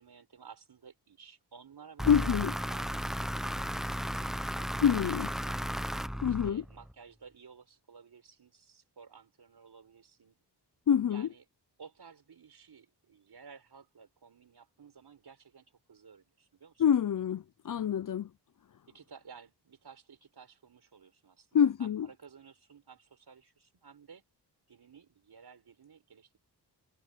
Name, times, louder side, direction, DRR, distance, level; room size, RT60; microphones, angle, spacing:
voice 1, 0.0-2.4 2.7-5.7 6.4-10.4 11.1-11.4 11.8-16.8 18.9-24.2 24.7-26.4, right 6 dB, 65° right, 4.6 m, -55 dB
sound 1, 2.0-6.9, equal, ahead, 0.8 m, -35 dB
voice 2, 2.1-2.5 4.8-5.3 6.2-6.6 10.9-11.3 16.8-18.3 21.5-22.1, left 8 dB, 50° left, 0.6 m, -26 dB
wide cardioid pair, 90°, 41 cm